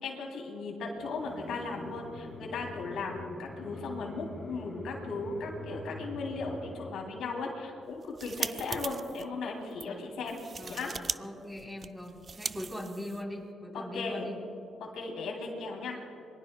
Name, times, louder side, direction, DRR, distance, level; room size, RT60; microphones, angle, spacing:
voice 1, 0.0-10.4 10.7-10.9 13.7-14.3 14.8-16.0, left 3 dB, 85° left, 0 dB, 3.0 m, -37 dB
sound 1, 1.0-6.9, left 2 dB, 25° left, 3.9 m, -44 dB
sound 2, 7.9-9.2 9.7-9.9 10.3-11.2 11.4-13.4, right 5 dB, 40° right, 0.3 m, -39 dB
voice 2, 9.9-14.4, left 1 dB, ahead, -1 dB, 3.6 m, -41 dB
26.0 x 22.5 x 2.3 m, 2.8 s
cardioid pair, 95°, 0 cm